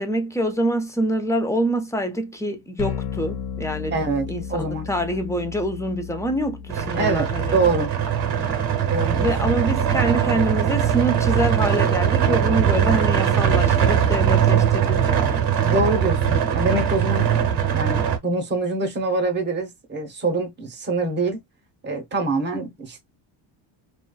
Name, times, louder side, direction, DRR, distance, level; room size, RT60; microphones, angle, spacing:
voice 1, 0.0-4.0 4.3-7.6 9.2-15.4, right 1 dB, 5° left, 0.4 m, -25 dB
sound 1, 2.8-12.8, left 7 dB, 60° left, 0.7 m, -37 dB
voice 2, 3.9-4.9 7.0-7.9 8.9-9.5 15.6-17.3 17.7-21.4 21.8-23.0, right 2 dB, 20° right, 0.8 m, -25 dB
sound 2, 6.7-18.2, right 8 dB, 55° right, 0.8 m, -21 dB
2.4 x 2.2 x 2.3 m
cardioid pair, 100°, 49 cm